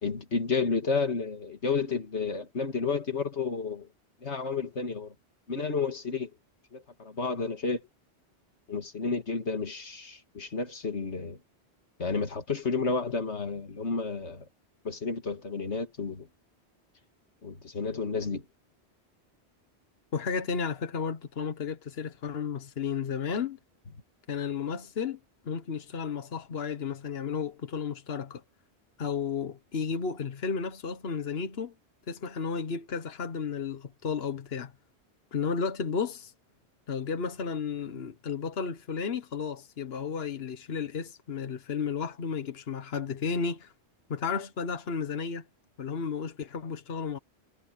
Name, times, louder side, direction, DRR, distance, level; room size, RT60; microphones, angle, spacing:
voice 1, 0.0-3.9 4.2-5.1 5.5-6.3 6.7-7.9 8.7-11.4 12.0-14.5 14.8-16.3 17.4-18.5, left 4 dB, 90° left, 2.4 m, -31 dB
voice 2, 20.1-23.6 24.3-25.2 25.4-28.4 29.0-31.7 32.1-34.7 35.3-36.3 36.9-43.7 44.1-45.4 45.8-47.2, left 6 dB, 65° left, 1.4 m, -33 dB
omnidirectional pair, 1.1 m